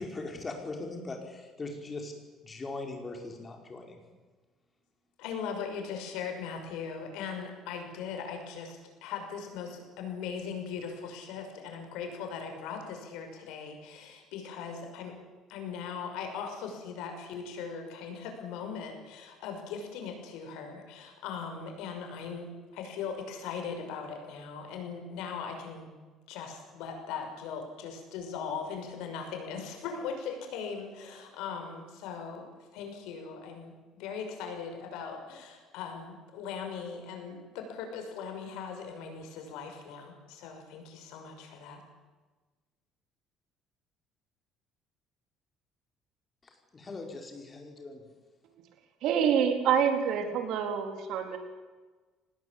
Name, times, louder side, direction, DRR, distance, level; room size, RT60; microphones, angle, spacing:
voice 1, 0.0-2.1 2.4-4.0 46.4-48.0, left 3 dB, 25° left, 3 dB, 5.2 m, -40 dB
voice 2, 5.2-15.2 15.5-25.9 26.3-41.8, left 6 dB, 90° left, 4 dB, 6.1 m, -39 dB
voice 3, 49.0-51.4, right 7 dB, 70° right, 5 dB, 3.9 m, -27 dB
24.5 x 19.5 x 8.7 m, 1.3 s
cardioid pair, 120°, 0 cm